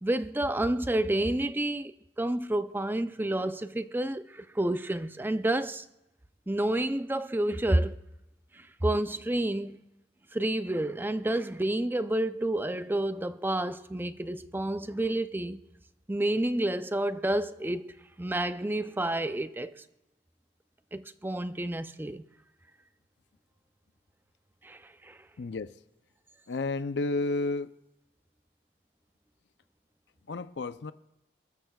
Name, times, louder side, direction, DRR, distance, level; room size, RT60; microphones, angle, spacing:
voice 1, 0.0-5.8 6.5-8.0 8.8-9.8 10.3-15.6 16.1-19.7 20.9-22.2 24.6-25.2, right 1 dB, 10° right, 0.5 m, -29 dB
voice 2, 25.4-25.8 26.5-27.7 30.3-30.9, left 3 dB, 70° left, 0.5 m, -31 dB
28.0 x 13.5 x 2.3 m
head